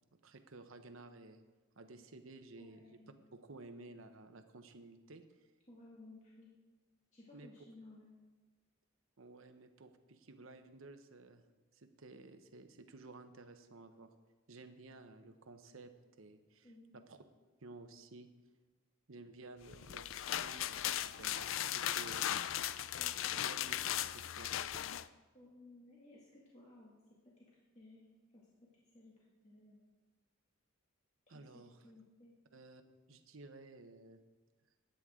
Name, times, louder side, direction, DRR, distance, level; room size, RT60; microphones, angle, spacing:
voice 1, 0.2-1.4 1.8-3.0 3.3-5.2 7.3-7.5 9.2-11.4 11.7-14.1 14.5-15.9 16.2-17.2 17.6-18.3 19.1-22.3 23.4-24.6 31.3-31.8 32.5-32.8 33.1-34.2, right 3 dB, 75° right, 8 dB, 0.9 m, -54 dB
voice 2, 2.6-3.2 5.7-6.5 7.1-8.1 16.6-17.0 23.0-23.5 25.3-27.0 27.4-27.5 27.7-28.0 28.3-28.5 28.9-29.1 29.4-29.8 31.3-32.3, left 2 dB, 35° left, -5 dB, 2.1 m, -58 dB
sound 1, 19.7-25.1, left 11 dB, 70° left, 0.4 m, -37 dB
15.5 x 10.0 x 3.7 m, 1.2 s
head